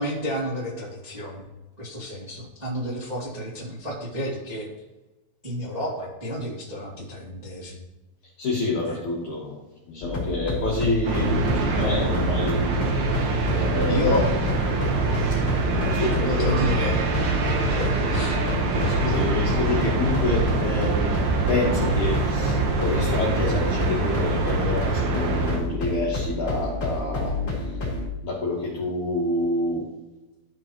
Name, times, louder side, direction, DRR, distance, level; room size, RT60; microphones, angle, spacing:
voice 1, 0.0-1.5 1.8-4.7 5.4-7.8 8.9-9.0 13.8-14.2 16.0-17.0 17.7-18.4, equal, 30° right, -6 dB, 0.7 m, -31 dB
voice 2, 8.4-13.2 13.5-14.3 15.3-15.4 15.8-16.6 18.7-21.2 21.5-27.3 28.2-29.9, left 2 dB, 60° left, -5 dB, 2.1 m, -28 dB
sound 1, 10.0-28.1, left 2 dB, 30° left, 2.3 m, -29 dB
sound 2, 11.0-25.6, right 3 dB, 70° right, 1.6 m, -25 dB
13.5 x 5.4 x 3.0 m, 1.1 s
omnidirectional pair, 5.1 m